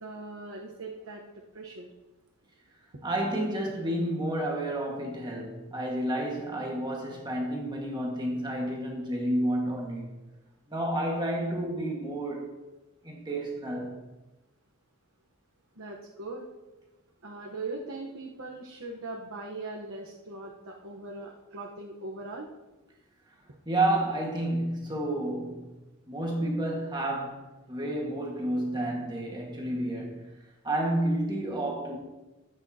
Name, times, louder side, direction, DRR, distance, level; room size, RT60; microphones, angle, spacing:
voice 1, 0.0-1.9 15.8-16.5 17.2-22.5, right 2 dB, 65° right, 1.1 m, -40 dB
voice 2, 3.0-10.1 10.7-12.5 13.0-14.0 23.6-25.7 26.1-27.4 27.7-30.3 30.6-32.0, right 1 dB, 20° right, 1.7 m, -30 dB
15.0 x 9.0 x 2.9 m
head